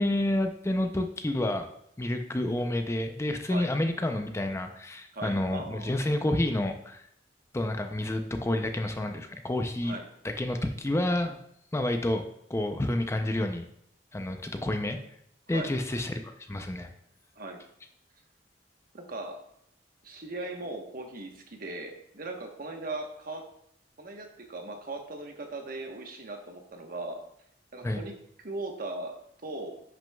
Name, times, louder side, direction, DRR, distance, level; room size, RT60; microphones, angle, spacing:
voice 1, 0.0-1.7 2.0-7.1 7.5-9.9 10.2-11.4 11.7-12.2 12.5-13.7 14.1-15.0 15.5-16.9 27.8-28.0, left 1 dB, 15° left, 6 dB, 0.5 m, -29 dB
voice 2, 5.1-6.0 9.8-10.1 15.5-15.7 17.3-17.6 18.9-19.4 20.0-23.5 24.0-27.2 27.7-29.2 29.4-29.8, right 2 dB, 55° right, 4 dB, 1.1 m, -38 dB
10.5 x 6.1 x 2.3 m, 0.73 s
head